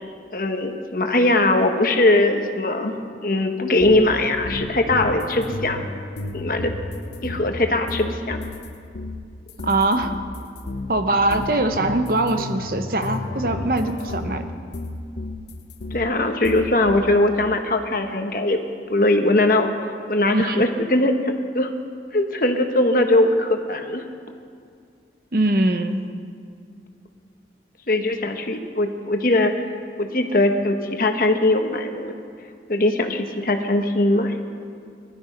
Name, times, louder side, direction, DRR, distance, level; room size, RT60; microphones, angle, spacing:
voice 1, 0.3-5.8 6.3-6.7 7.2-8.4 15.9-18.6 18.9-19.7 20.1-21.7 22.1-24.0 27.9-29.5 30.0-32.1 32.7-34.3, left 2 dB, 50° left, 5 dB, 1.2 m, -20 dB
sound 1, 3.8-8.7 8.9-16.1 16.4-17.0, left 2 dB, 75° left, 0.9 m, -32 dB
voice 2, 9.6-10.2 10.9-14.5 20.3-20.6 25.3-26.1, right 2 dB, 55° right, 8 dB, 0.9 m, -22 dB
20.5 x 12.5 x 5.2 m, 2.2 s
head